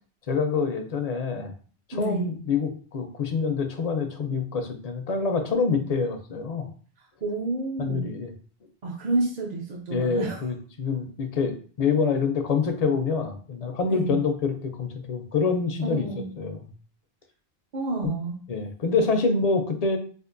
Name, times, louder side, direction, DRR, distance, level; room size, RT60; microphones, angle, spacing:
voice 1, 0.3-1.5 1.9-6.7 7.8-8.3 9.9-16.1 16.4-16.7 18.0-18.1 18.5-20.0, left 5 dB, 50° left, 6 dB, 0.5 m, -26 dB
voice 2, 1.9-2.3 7.2-8.1 8.8-10.4 13.9-14.2 15.8-16.3 17.7-18.4, right 2 dB, 50° right, 0 dB, 0.6 m, -29 dB
4.4 x 2.5 x 2.5 m, 0.42 s
omnidirectional pair, 1.0 m